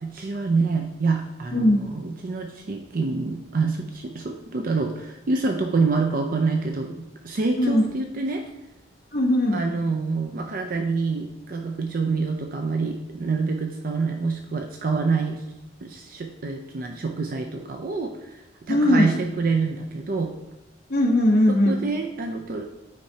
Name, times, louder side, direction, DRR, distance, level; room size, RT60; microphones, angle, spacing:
voice 1, 0.0-8.4 9.5-15.4 15.8-18.4 18.7-20.3 21.7-22.6, right 4 dB, 50° right, 3 dB, 0.5 m, -26 dB
voice 2, 9.1-9.6 18.7-19.2 20.9-21.8, left 1 dB, 55° left, -2 dB, 1.0 m, -19 dB
8.3 x 4.5 x 2.8 m, 0.95 s
head